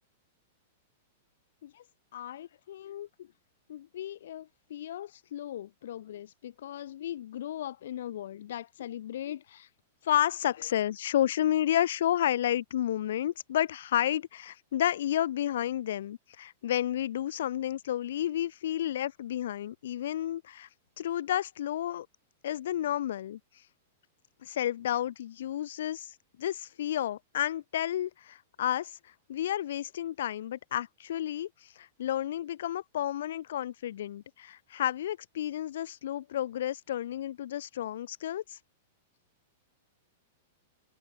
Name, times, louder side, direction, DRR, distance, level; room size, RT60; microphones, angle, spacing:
voice 1, 2.1-3.1 3.7-9.7 10.0-20.7 21.0-22.1 22.4-23.4 24.4-38.6, left 11 dB, 70° left, 0.5 m, -32 dB
hypercardioid pair, 115°, 0 cm